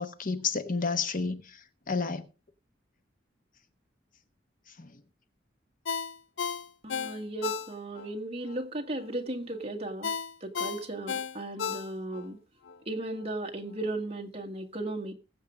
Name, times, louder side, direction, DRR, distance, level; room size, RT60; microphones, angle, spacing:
voice 1, 0.0-1.6 1.9-2.3 4.8-4.9, left 4 dB, 50° left, 1.0 m, -31 dB
Ringtone, 5.8-8.1 8.5-8.6 10.0-12.3 12.7-12.8, left 6 dB, 80° left, 0.6 m, -34 dB
voice 2, 6.8-10.1 10.4-12.4 12.9-15.1, right 2 dB, 35° right, 1.8 m, -36 dB
20.5 x 7.6 x 3.6 m
head